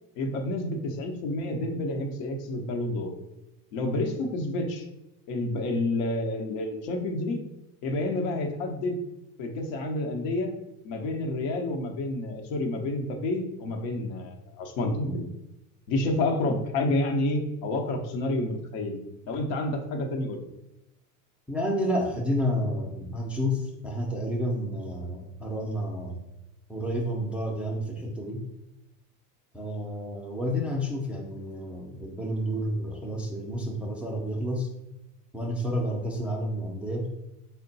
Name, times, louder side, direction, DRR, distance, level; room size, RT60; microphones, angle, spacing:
voice 1, 0.2-3.1 3.7-4.9 5.3-7.4 7.8-9.0 9.4-10.5 10.8-15.3 15.9-19.0 19.3-20.4, left 2 dB, 65° left, 3 dB, 0.9 m, -29 dB
voice 2, 21.5-26.2 26.7-28.4 29.5-34.7 35.3-37.1, equal, 5° right, -2 dB, 0.4 m, -30 dB
3.6 x 2.2 x 4.0 m, 0.91 s
hypercardioid pair, 95°, 46 cm